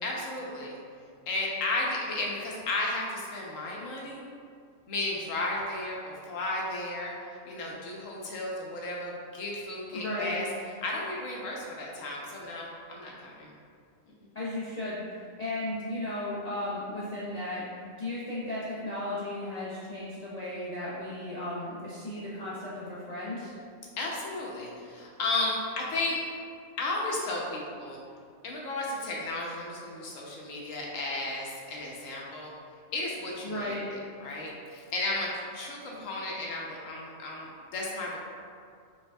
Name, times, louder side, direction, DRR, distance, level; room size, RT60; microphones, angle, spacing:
voice 1, 0.0-0.8 1.3-4.2 4.9-7.2 7.5-10.5 10.8-13.5 14.2-14.3 24.0-26.2 26.8-28.0 28.4-32.5 32.9-38.2, left 2 dB, 80° left, -3 dB, 1.2 m, -34 dB
voice 2, 9.9-10.4 14.3-17.6 18.0-23.5 33.4-33.8, left 1 dB, 45° left, -9 dB, 0.6 m, -35 dB
5.5 x 3.3 x 2.2 m, 2.2 s
omnidirectional pair, 1.4 m